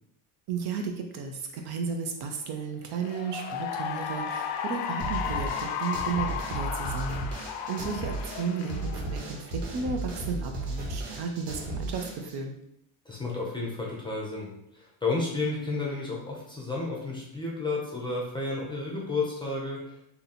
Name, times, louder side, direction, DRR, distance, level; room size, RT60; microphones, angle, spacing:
voice 1, 0.5-12.5, right 5 dB, 55° right, 4 dB, 0.6 m, -34 dB
Cheering / Applause, 2.9-9.6, left 7 dB, 60° left, 0.5 m, -34 dB
sound 1, 5.0-12.3, right 2 dB, 80° right, 1.4 m, -35 dB
voice 2, 13.1-20.0, left 3 dB, 10° left, -3 dB, 0.6 m, -32 dB
2.8 x 2.7 x 4.1 m, 0.76 s
cardioid pair, 155°, 49 cm